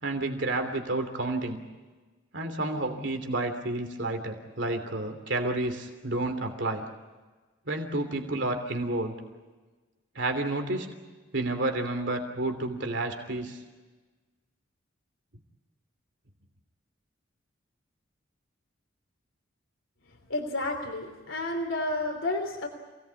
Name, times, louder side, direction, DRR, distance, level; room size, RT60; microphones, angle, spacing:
voice 1, 0.0-1.6 2.3-6.9 7.7-9.2 10.1-10.9 11.3-13.6, right 2 dB, 65° right, 5 dB, 3.0 m, -30 dB
voice 2, 20.3-22.7, left 2 dB, 80° left, 3 dB, 3.2 m, -31 dB
27.5 x 19.0 x 8.4 m, 1.3 s
head